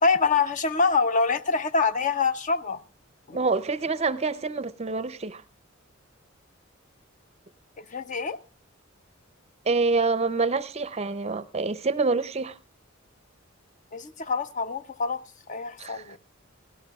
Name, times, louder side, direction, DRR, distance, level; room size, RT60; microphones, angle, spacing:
voice 1, 0.0-2.8 3.3-3.4 7.8-8.4 13.9-15.2 15.5-16.2, left 4 dB, 40° left, 0.6 m, -25 dB
voice 2, 3.3-5.4 9.7-12.6 15.8-16.2, right 4 dB, 30° right, 0.5 m, -26 dB
17.5 x 16.5 x 2.3 m
head